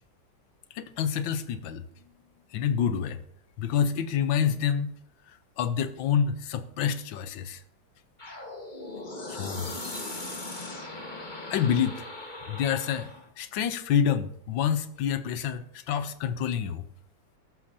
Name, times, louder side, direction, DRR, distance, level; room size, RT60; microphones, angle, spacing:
voice 1, 0.7-1.8 2.5-3.2 3.6-4.9 5.6-7.6 9.4-9.7 11.5-12.0 12.5-13.1 13.4-16.8, left 8 dB, 85° left, 11 dB, 1.5 m, -27 dB
sound 1, 8.2-13.3, left 2 dB, 25° left, 1.6 m, -39 dB
14.0 x 12.0 x 2.8 m, 0.73 s
omnidirectional pair, 2.0 m